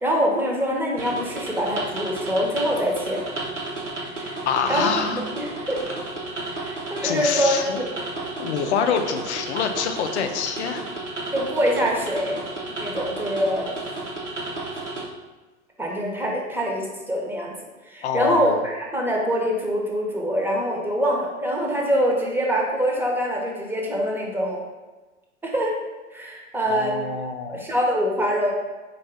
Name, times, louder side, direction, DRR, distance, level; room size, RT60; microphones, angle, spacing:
voice 1, 0.0-3.2 4.0-5.8 6.5-7.9 11.3-12.4 12.8-13.7 15.8-17.5 17.8-24.6 25.4-25.7 26.1-27.1 27.4-28.5, equal, 5° right, -2 dB, 0.9 m, -24 dB
sound 1, 1.0-15.0, right 2 dB, 90° right, 0.9 m, -32 dB
voice 2, 4.5-5.2 7.0-7.8 8.4-10.9 18.0-18.6 26.7-27.7, left 7 dB, 65° left, 7 dB, 0.6 m, -26 dB
4.2 x 2.5 x 4.7 m, 1.3 s
figure-of-eight pair, 85°, 35 cm